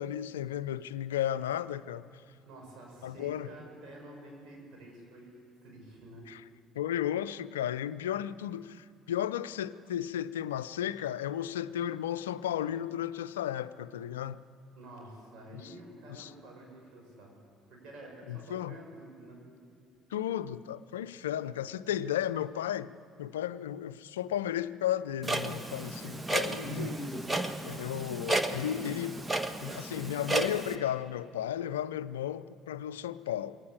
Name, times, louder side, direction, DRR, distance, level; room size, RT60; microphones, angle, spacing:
voice 1, 0.0-2.1 3.0-3.5 6.3-6.4 6.8-14.4 15.5-15.7 16.1-16.3 18.3-18.8 20.1-22.9 23.2-27.0 27.7-29.2 29.6-33.6, left 11 dB, 75° left, 0.5 m, -34 dB
voice 2, 2.4-6.3 14.8-17.3 17.7-19.4 26.3-26.6, right 1 dB, 55° right, 6.7 m, -49 dB
Clock, 25.2-30.8, right 2 dB, 15° right, 1.5 m, -33 dB
22.5 x 18.0 x 8.7 m
figure-of-eight pair, 55°, 0 cm